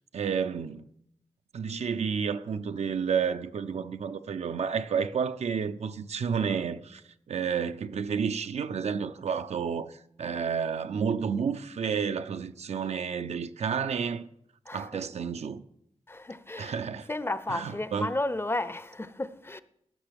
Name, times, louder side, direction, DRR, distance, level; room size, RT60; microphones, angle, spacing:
voice 1, 0.1-0.9 1.5-14.3 14.7-15.6 16.6-17.1 17.5-18.1, right 6 dB, 75° right, 0.4 m, -31 dB
voice 2, 16.1-16.7 17.1-19.6, left 2 dB, 20° left, 0.5 m, -33 dB
14.5 x 5.9 x 3.5 m
cardioid pair, 45°, 11 cm